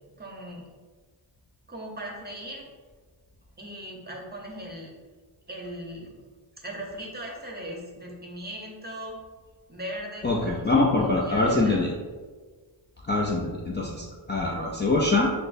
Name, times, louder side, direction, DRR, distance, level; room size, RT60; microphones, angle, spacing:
voice 1, 0.2-0.6 1.7-2.7 3.6-4.9 5.5-6.2 6.6-9.2 9.7-11.8, right 1 dB, 20° right, -1 dB, 0.7 m, -38 dB
voice 2, 10.2-11.9 13.1-15.3, left 2 dB, 25° left, -3 dB, 0.4 m, -24 dB
5.9 x 2.1 x 2.6 m, 1.4 s
wide cardioid pair, 100°, 45 cm